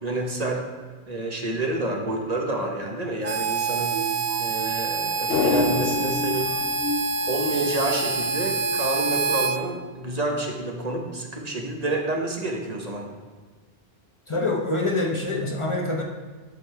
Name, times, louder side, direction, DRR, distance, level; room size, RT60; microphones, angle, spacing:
voice 1, 0.0-0.6 1.1-4.0 4.4-6.6 7.3-13.1, right 1 dB, 40° right, 1 dB, 1.1 m, -29 dB
Harmonica, 3.2-9.6, right 3 dB, 90° right, 0.9 m, -26 dB
sound 1, 3.9-9.6 10.0-10.3 10.8-11.0, right 1 dB, 25° right, 0.6 m, -33 dB
sound 2, 5.3-7.8 8.1-8.2, left 6 dB, 65° left, 0.8 m, -29 dB
voice 2, 14.3-16.0, left 2 dB, 30° left, 0 dB, 0.9 m, -25 dB
12.0 x 5.3 x 3.4 m, 1.4 s
omnidirectional pair, 1.1 m